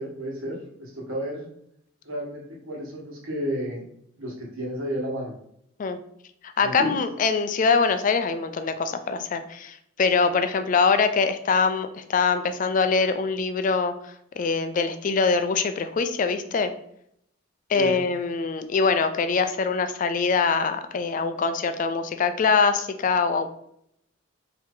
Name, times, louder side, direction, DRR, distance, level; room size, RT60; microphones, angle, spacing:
voice 1, 0.0-1.5 2.0-3.8 4.2-5.3 6.6-7.0 17.7-18.0, equal, 85° right, -3 dB, 1.5 m, -32 dB
voice 2, 6.4-13.9 14.4-16.7 17.7-23.5, left 5 dB, 40° left, 9 dB, 0.3 m, -23 dB
4.5 x 2.8 x 3.7 m, 0.72 s
head